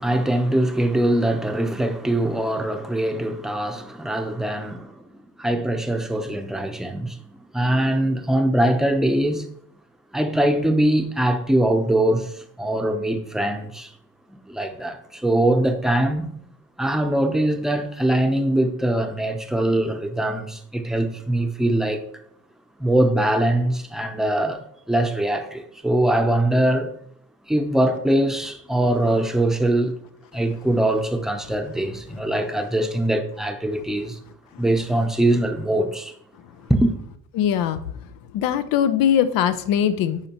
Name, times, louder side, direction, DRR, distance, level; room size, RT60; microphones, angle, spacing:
voice 1, 0.0-7.2 7.5-9.4 10.1-13.9 14.5-16.3 16.8-22.0 22.8-26.9 27.5-29.9 30.3-34.2 34.6-36.1 36.7-36.9, right 1 dB, ahead, 0.6 m, -22 dB
voice 2, 37.3-37.8 38.3-40.2, left 9 dB, 90° left, 0.7 m, -21 dB
10.5 x 4.3 x 2.9 m
cardioid pair, 125°, 34 cm